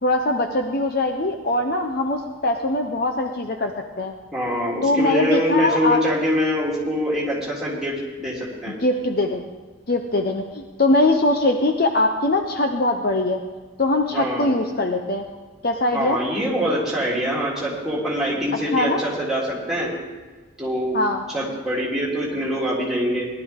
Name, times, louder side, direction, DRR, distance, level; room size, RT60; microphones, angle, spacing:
voice 1, 0.0-3.7 4.0-4.1 4.8-6.0 8.8-9.4 9.9-13.4 13.8-15.3 15.6-16.2 18.7-19.0 20.9-21.2, left 2 dB, 45° left, 4 dB, 0.8 m, -21 dB
voice 2, 4.3-8.8 14.1-14.5 15.9-19.9 20.6-21.0 21.3-23.3, equal, ahead, -6 dB, 3.4 m, -24 dB
18.5 x 12.0 x 3.7 m, 1.3 s
head